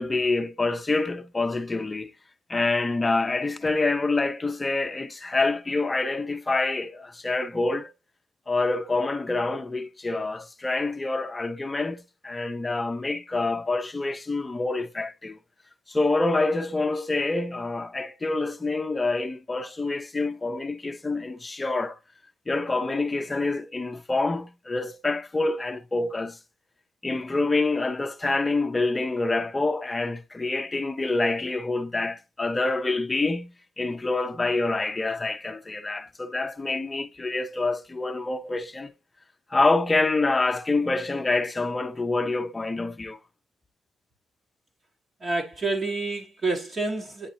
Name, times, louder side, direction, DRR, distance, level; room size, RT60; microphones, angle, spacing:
voice 1, 0.0-2.1 2.5-7.9 8.5-15.4 15.9-22.0 22.5-26.4 27.0-38.9 39.5-43.2, left 3 dB, 20° left, 0.7 m, -26 dB
voice 2, 45.2-47.3, right 3 dB, 35° right, 1.3 m, -28 dB
9.0 x 4.0 x 2.7 m
cardioid pair, 90°, 0 cm